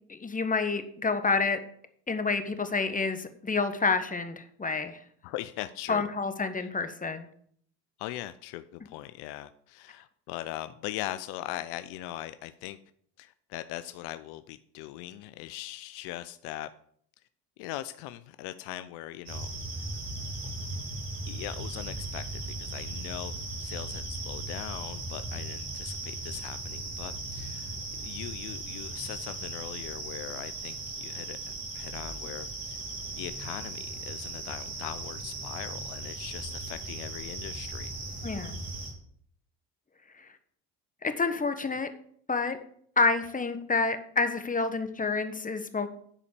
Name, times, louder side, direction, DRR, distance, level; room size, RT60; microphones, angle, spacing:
voice 1, 0.1-1.6 2.1-5.0 5.9-7.3 38.2-38.6 40.2-40.3 41.0-41.9 42.3-42.6 43.0-45.9, left 4 dB, 20° left, 9 dB, 1.2 m, -28 dB
voice 2, 5.2-6.0 6.6-6.7 8.0-12.8 13.2-16.7 17.6-19.5 21.3-22.2 22.6-23.3 23.6-31.4 31.7-32.8 33.2-37.9, left 15 dB, 75° left, 12 dB, 0.6 m, -40 dB
Fraser Range Salt Lake Eve, 19.3-38.9, right 2 dB, 75° right, 3.6 m, -37 dB
10.0 x 4.2 x 6.7 m, 0.62 s
supercardioid pair, 75°, 39 cm